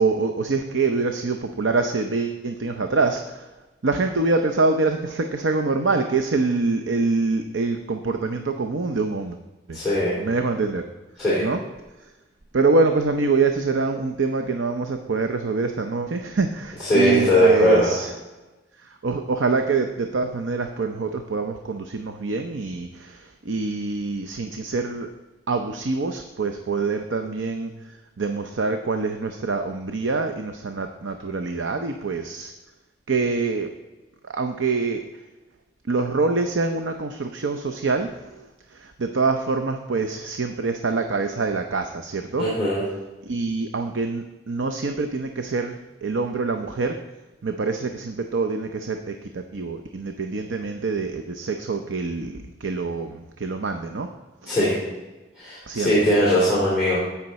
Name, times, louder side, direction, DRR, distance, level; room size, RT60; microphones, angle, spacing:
voice 1, 0.0-3.5 3.8-9.4 9.7-9.8 10.2-10.8 11.4-11.6 12.5-18.1 18.8-25.1 25.5-27.7 28.2-32.5 33.1-33.7 34.2-35.0 35.8-42.5 43.2-47.0 47.4-54.1 54.4-54.6 55.7-56.0, right 3 dB, 85° right, 6 dB, 0.7 m, -25 dB
voice 2, 9.7-10.2 11.2-11.4 16.9-17.9 42.4-42.8 54.5-54.8 55.4-57.0, equal, ahead, -10 dB, 3.5 m, -19 dB
15.5 x 5.8 x 4.2 m, 1.1 s
head